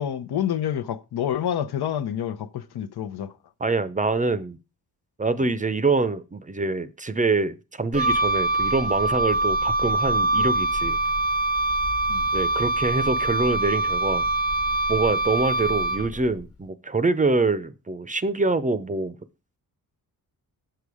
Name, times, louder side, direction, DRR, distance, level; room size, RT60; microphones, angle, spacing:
voice 1, 0.0-3.3 12.1-12.3, left 10 dB, 85° left, 0.8 m, -28 dB
voice 2, 3.6-4.6 5.2-11.0 12.3-14.2 14.9-19.2, right 3 dB, 20° right, 0.5 m, -25 dB
Wind instrument woodwind instrument, 7.9-16.3, right 2 dB, 40° left, 1.4 m, -24 dB
7.6 x 6.8 x 4.8 m
wide cardioid pair, 110°, 38 cm